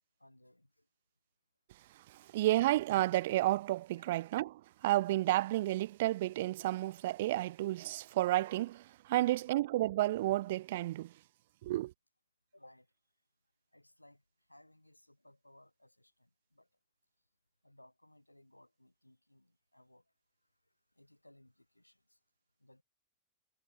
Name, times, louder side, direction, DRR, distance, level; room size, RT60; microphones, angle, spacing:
voice 1, 0.2-0.7 9.1-9.4 12.5-12.9 13.7-14.2 14.5-16.7 17.6-20.0 21.0-22.0 22.6-22.8, left 1 dB, 85° left, 7.2 m, -62 dB
voice 2, 2.1-11.1 11.6-11.9, right 16 dB, 55° right, 0.4 m, -31 dB
figure-of-eight pair, 90°, 0 cm